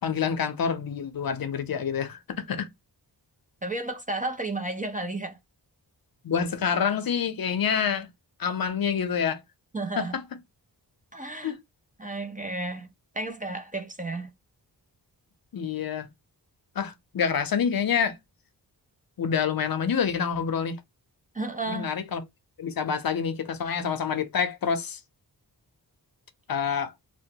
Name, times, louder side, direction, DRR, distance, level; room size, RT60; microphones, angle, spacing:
voice 1, 0.0-2.7 6.2-8.1 8.4-9.4 10.0-10.2 11.4-11.6 15.5-16.1 16.8-18.2 19.2-20.8 21.7-22.2 22.6-25.0 26.5-26.9, left 7 dB, 55° left, 0.6 m, -27 dB
voice 2, 3.6-5.4 9.7-10.1 11.1-11.5 12.0-12.9 13.1-14.3 21.3-21.9, right 2 dB, 20° right, 0.4 m, -32 dB
2.9 x 2.1 x 2.7 m
wide cardioid pair, 90°, 42 cm